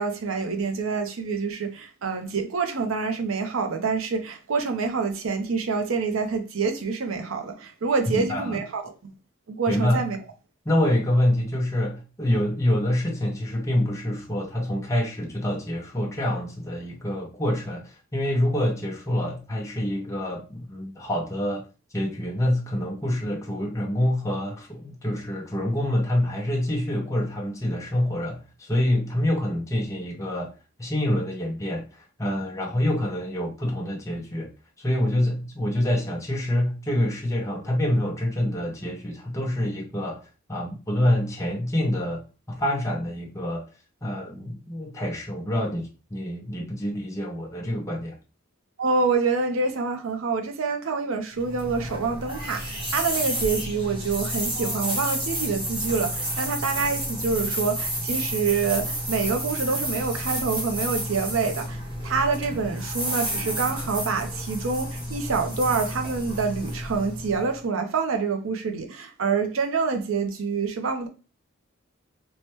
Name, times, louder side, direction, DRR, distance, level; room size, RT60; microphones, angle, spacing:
voice 1, 0.0-9.1 9.5-10.2 48.8-71.1, right 4 dB, 70° right, 0.5 m, -27 dB
voice 2, 8.1-8.6 9.7-10.1 10.7-21.6 21.9-30.5 30.8-34.5 34.8-40.2 40.5-42.2 42.5-43.6 44.0-48.2, left 1 dB, 15° left, 0.5 m, -26 dB
sound 1, 51.4-67.6, equal, 25° right, 0.8 m, -30 dB
3.1 x 2.1 x 2.9 m
head